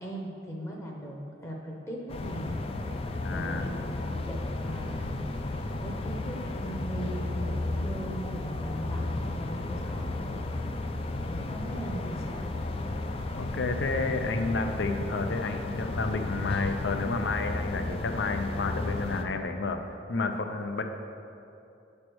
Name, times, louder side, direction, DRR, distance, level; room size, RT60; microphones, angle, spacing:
voice 1, 0.0-2.6 3.3-5.3 5.7-10.3 11.2-12.5, right 1 dB, 15° left, -1 dB, 0.7 m, -39 dB
sound 1, 2.1-19.2, left 2 dB, 30° left, 0.3 m, -33 dB
voice 2, 3.2-3.7 13.3-19.8 20.1-20.8, left 3 dB, 80° left, 6 dB, 0.5 m, -31 dB
8.4 x 3.2 x 6.0 m, 2.7 s
head